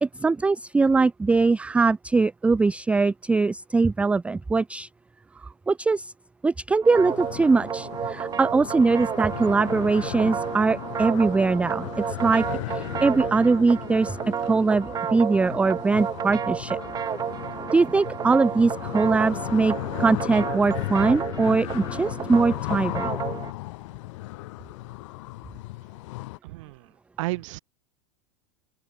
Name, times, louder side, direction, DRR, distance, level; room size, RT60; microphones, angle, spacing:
voice 1, 0.0-4.9 5.4-6.1 6.4-12.4 12.7-14.2 14.4-16.8 17.7-23.1, right 4 dB, 5° right, 0.4 m, -22 dB
sound 1, 6.8-23.5, right 8 dB, 25° right, 1.4 m, -32 dB
sound 2, 6.9-26.4, left 20 dB, 70° left, 0.6 m, -36 dB
voice 2, 26.4-27.6, right 20 dB, 70° right, 1.6 m, -33 dB
open air
supercardioid pair, 130°, 17 cm